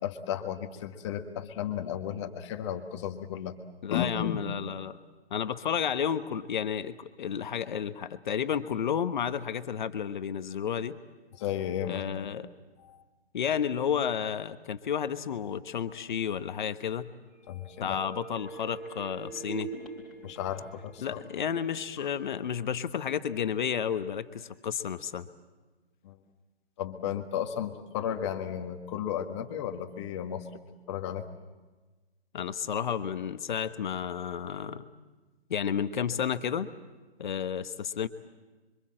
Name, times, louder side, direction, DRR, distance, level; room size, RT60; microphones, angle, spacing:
voice 1, 0.0-3.6 3.9-4.4 11.4-12.3 12.8-13.0 17.5-18.0 20.2-21.2 22.0-22.1 26.0-26.2 26.8-30.6 30.9-31.3, left 9 dB, 25° left, 6 dB, 1.5 m, -34 dB
voice 2, 3.8-5.0 5.3-11.0 11.9-12.5 13.3-17.1 17.8-19.7 21.0-25.3 32.3-34.8 35.5-36.7 37.2-38.1, left 8 dB, 45° left, 11 dB, 1.2 m, -31 dB
sound 1, 17.3-23.0 23.3-23.4, right 4 dB, ahead, 4.0 m, -45 dB
26.5 x 24.5 x 7.6 m, 1.2 s
hypercardioid pair, 150°, 32 cm